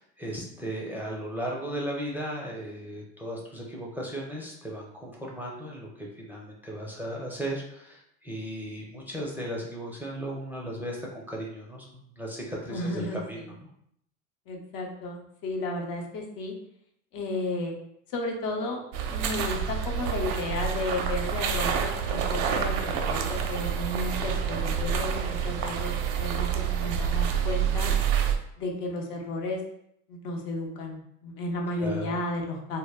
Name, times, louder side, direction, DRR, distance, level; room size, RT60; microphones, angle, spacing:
voice 1, 0.0-13.4 31.8-32.2, right 1 dB, 5° right, -3 dB, 0.5 m, -36 dB
voice 2, 12.7-13.5 14.5-16.5 17.1-17.7 18.1-18.8 19.1-27.9 28.6-29.6 30.1-32.8, left 2 dB, 60° left, 1 dB, 0.7 m, -33 dB
sound 1, 18.9-28.4, right 7 dB, 65° right, 0.5 m, -28 dB
2.1 x 2.0 x 3.3 m, 0.73 s
hypercardioid pair, 75°, 41 cm